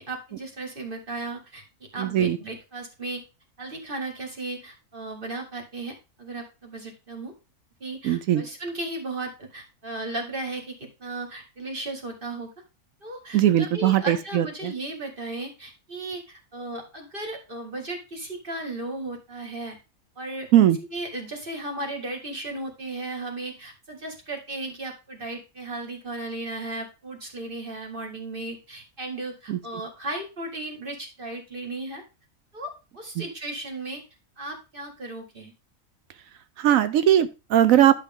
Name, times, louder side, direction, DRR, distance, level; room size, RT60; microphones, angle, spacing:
voice 1, 0.0-1.6 1.9-3.2 3.6-7.3 7.8-12.5 13.0-19.8 20.2-20.5 20.9-32.0 32.5-34.0 34.4-35.5, right 2 dB, 40° right, 2 dB, 2.3 m, -35 dB
voice 2, 2.0-2.4 8.0-8.4 13.3-14.7 20.5-20.8 29.5-29.6 33.2-33.3 36.6-37.9, right 11 dB, 80° right, 13 dB, 1.0 m, -20 dB
11.0 x 5.6 x 3.6 m, 0.29 s
omnidirectional pair, 1.4 m